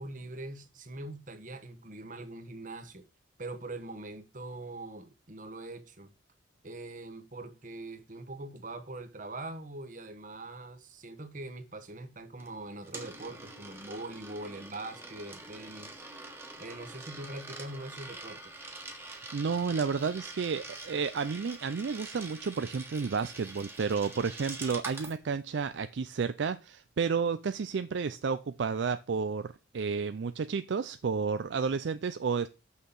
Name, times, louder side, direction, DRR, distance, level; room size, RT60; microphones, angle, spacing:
voice 1, 0.0-3.0 3.4-6.1 6.6-16.0 16.6-18.7, right 2 dB, 40° right, 1.2 m, -43 dB
Coin (dropping), 12.4-25.2, right 2 dB, 10° right, 1.4 m, -45 dB
voice 2, 19.1-32.5, right 5 dB, 65° right, 0.4 m, -31 dB
6.4 x 5.6 x 7.0 m
head